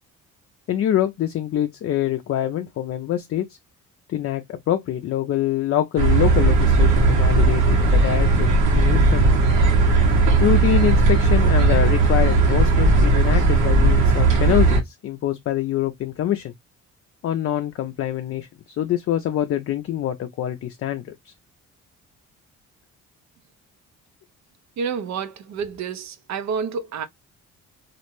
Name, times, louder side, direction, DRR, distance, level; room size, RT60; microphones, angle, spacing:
voice 1, 0.7-3.5 4.1-9.4 10.4-16.5 17.2-18.5 18.8-21.1, left 11 dB, 50° left, 0.4 m, -25 dB
sound 1, 6.0-14.8, right 3 dB, 80° right, 1.1 m, -17 dB
voice 2, 24.8-27.1, right 6 dB, 65° right, 0.5 m, -29 dB
2.5 x 2.0 x 2.9 m
cardioid pair, 90°, 30 cm